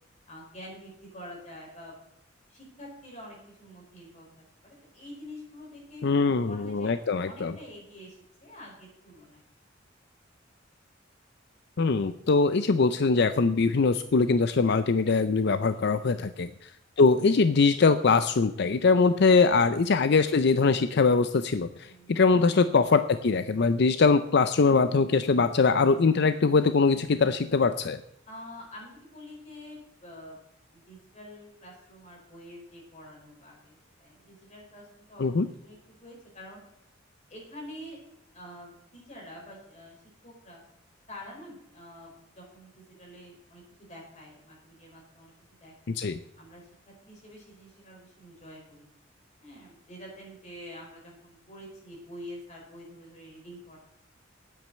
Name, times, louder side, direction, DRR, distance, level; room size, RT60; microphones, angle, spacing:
voice 1, 0.3-2.0 2.5-6.0 6.4-6.9 7.2-9.4 15.6-16.1 21.8-22.2 28.3-30.4 30.7-36.6 37.3-38.0 38.3-40.0 40.2-40.6 41.1-45.3 45.6-46.0 46.4-48.8 49.4-53.8, left 1 dB, 35° left, -2 dB, 4.8 m, -47 dB
voice 2, 6.0-7.5 11.8-16.7 17.0-28.0 35.2-35.5 45.9-46.2, left 4 dB, 60° left, 12 dB, 0.5 m, -22 dB
9.4 x 8.5 x 8.7 m, 0.82 s
head